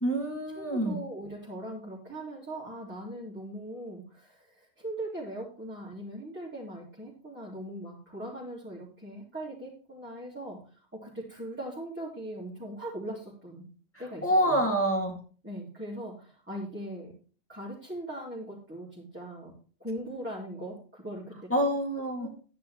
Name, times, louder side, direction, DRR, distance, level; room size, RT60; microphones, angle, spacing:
voice 1, 0.0-1.0 14.2-15.2 21.5-22.3, equal, 10° left, 1 dB, 2.2 m, -26 dB
voice 2, 0.5-13.6 14.0-14.6 15.4-17.1 17.5-19.5 19.8-21.7 22.2-22.3, right 1 dB, 10° right, -6 dB, 2.7 m, -40 dB
11.0 x 9.8 x 3.1 m, 0.40 s
omnidirectional pair, 1.4 m